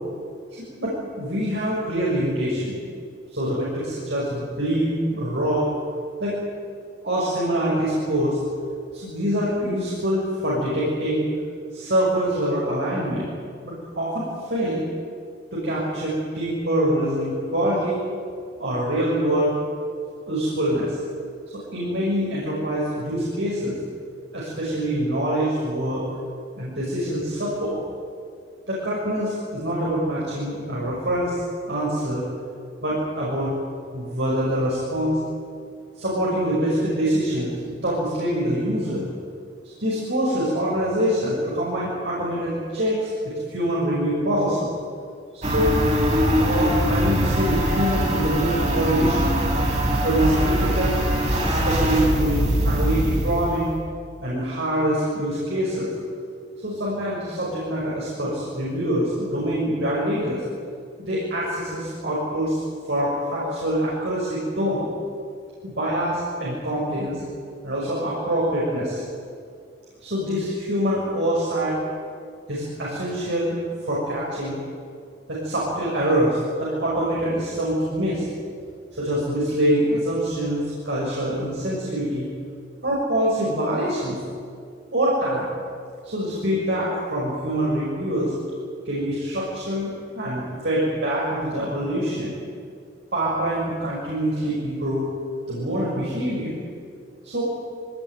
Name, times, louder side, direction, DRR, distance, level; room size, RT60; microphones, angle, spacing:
voice 1, 0.8-2.8 3.3-5.7 6.2-6.4 7.0-8.4 8.9-11.2 11.7-13.3 13.6-14.2 14.5-14.8 15.5-18.0 18.6-19.6 20.3-21.0 21.5-23.8 24.3-26.0 26.6-27.8 28.7-31.4 31.7-32.2 32.8-33.5 33.9-35.2 36.0-39.1 39.6-43.1 43.5-44.7 45.3-45.9 46.4-49.3 50.0-51.0 51.4-53.7 54.2-55.9 56.6-60.4 61.0-62.6 62.9-64.8 65.6-67.2 67.6-69.0 70.0-71.8 72.5-73.6 73.9-74.6 75.3-78.2 79.0-82.3 82.8-84.2 84.9-85.5 86.0-88.3 88.8-92.3 93.1-95.1 95.5-96.6 97.2-97.4, right 1 dB, 80° right, -6 dB, 6.4 m, -25 dB
sound 1, 45.4-53.7, equal, 40° right, 4.1 m, -22 dB
22.5 x 19.0 x 9.3 m, 2.2 s
head